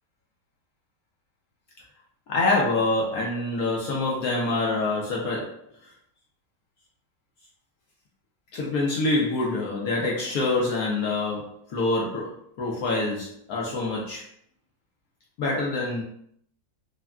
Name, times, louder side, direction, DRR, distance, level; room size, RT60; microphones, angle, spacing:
voice 1, 2.3-5.9 8.5-14.2 15.4-16.0, left 2 dB, 70° left, -3 dB, 0.9 m, -26 dB
3.5 x 2.2 x 2.2 m, 0.67 s
omnidirectional pair, 2.0 m